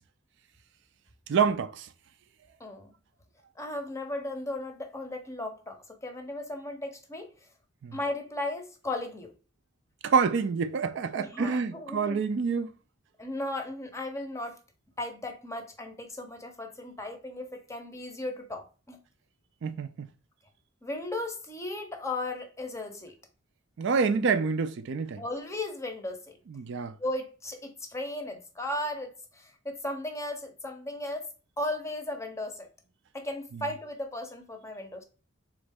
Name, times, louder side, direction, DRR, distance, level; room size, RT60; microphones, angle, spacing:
voice 1, 1.3-1.9 7.8-8.0 10.0-12.7 19.6-20.1 23.8-25.2 26.5-27.0 33.5-33.6, right 5 dB, 60° right, 0.4 m, -27 dB
voice 2, 2.6-2.9 3.6-7.3 7.9-9.3 11.2-12.2 13.2-14.6 15.0-19.0 20.8-23.2 25.2-26.4 27.0-31.3 31.6-32.7 33.1-35.0, left 1 dB, 15° left, 0.6 m, -36 dB
4.0 x 3.2 x 3.4 m
head